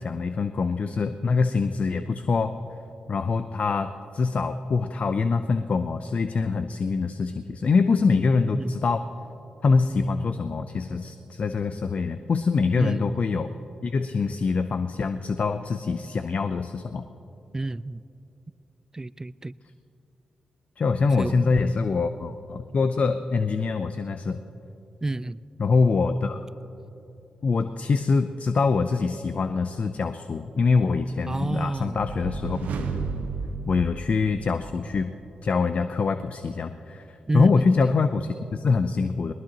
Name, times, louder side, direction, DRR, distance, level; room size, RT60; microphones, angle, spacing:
voice 1, 0.0-2.6 3.1-9.1 9.6-13.5 13.8-17.1 20.8-24.4 25.6-26.4 27.4-32.6 32.9-33.1 33.7-35.1 35.4-39.3, left 4 dB, 55° left, 10 dB, 0.6 m, -24 dB
voice 2, 12.8-13.2 17.5-18.0 18.9-19.5 21.2-21.5 25.0-25.4 31.3-32.0 32.3-32.4 37.3-37.9, right 2 dB, 20° right, 18 dB, 0.4 m, -30 dB
sound 1, 31.5-34.7, right 4 dB, 85° right, 1.0 m, -33 dB
20.5 x 19.0 x 3.0 m, 2.9 s
supercardioid pair, 40°, 3 cm